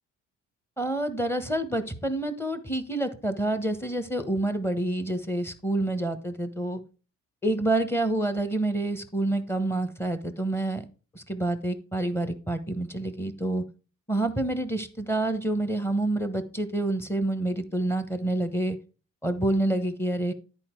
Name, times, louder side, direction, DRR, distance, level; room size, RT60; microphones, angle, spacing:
voice 1, 0.8-6.8 7.4-10.8 11.1-13.6 14.1-18.8 19.2-20.3, right 1 dB, 10° left, 10 dB, 1.2 m, -28 dB
9.8 x 4.5 x 4.5 m, 0.35 s
cardioid pair, 90°, 30 cm